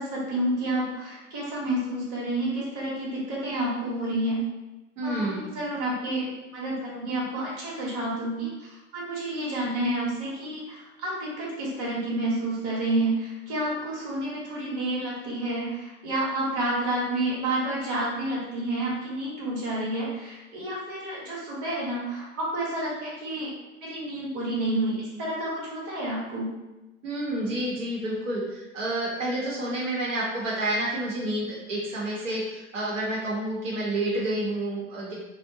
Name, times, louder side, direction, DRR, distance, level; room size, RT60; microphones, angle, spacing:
voice 1, 0.0-4.4 5.0-23.5 23.8-26.5, right 1 dB, 35° right, -5 dB, 1.0 m, -29 dB
voice 2, 5.0-5.5 27.0-35.1, right 1 dB, 70° right, -6 dB, 0.9 m, -29 dB
2.5 x 2.1 x 2.6 m, 1.1 s
figure-of-eight pair, 90°, 39 cm